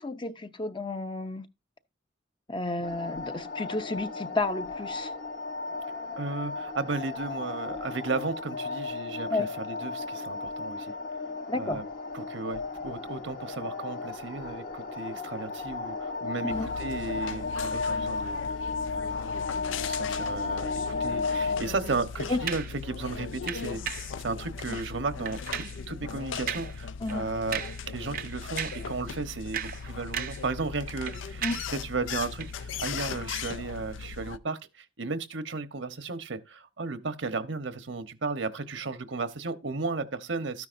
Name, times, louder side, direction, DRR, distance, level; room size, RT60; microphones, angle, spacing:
voice 1, 0.0-1.5 2.5-5.1 9.3-9.5 11.5-11.8 16.4-16.7 22.3-22.4 27.0-27.3 31.4-31.6, left 2 dB, 25° left, 0.6 m, -31 dB
sound 1, 2.8-21.6, left 4 dB, 45° left, 1.0 m, -34 dB
voice 2, 6.2-10.9 11.6-11.8 12.1-18.6 18.9-19.1 19.7-40.7, right 3 dB, 80° right, 1.1 m, -34 dB
sound 2, 16.5-34.4, left 6 dB, 85° left, 0.4 m, -38 dB
sound 3, 22.5-22.8 23.5-24.1 24.7-24.9 25.3-25.8 26.5-26.8 27.1-27.2 27.5-27.9 28.1-28.9 29.3-30.5 30.8-31.8 32.4-32.5, right 9 dB, 50° right, 0.6 m, -36 dB
13.0 x 9.6 x 2.6 m
head